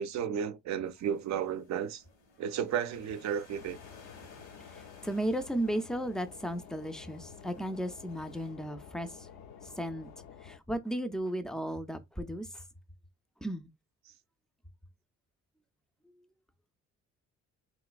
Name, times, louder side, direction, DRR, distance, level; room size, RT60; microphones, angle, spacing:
voice 1, 0.0-2.0 2.4-3.8, right 8 dB, 65° right, 0.5 m, -33 dB
sound 1, 0.8-8.5, left 3 dB, 90° left, 1.6 m, -59 dB
sound 2, 3.5-10.6, left 7 dB, 70° left, 0.6 m, -51 dB
voice 2, 4.7-9.3 9.6-10.1 10.4-12.6 13.4-13.7, right 1 dB, ahead, 0.4 m, -35 dB
3.1 x 3.0 x 2.4 m
cardioid pair, 90°, 30 cm